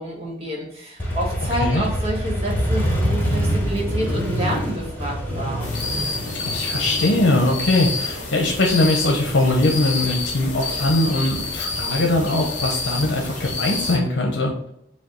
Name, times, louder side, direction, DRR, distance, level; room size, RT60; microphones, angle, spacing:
voice 1, 0.0-5.7, right 1 dB, 30° right, -2 dB, 1.4 m, -28 dB
Motorcycle, 1.0-8.6, equal, 10° left, 0.8 m, -25 dB
sound 1, 5.6-14.0, left 3 dB, 40° left, 1.0 m, -28 dB
voice 2, 6.4-14.5, left 2 dB, 70° left, 0 dB, 0.8 m, -21 dB
5.1 x 2.3 x 3.8 m, 0.77 s
head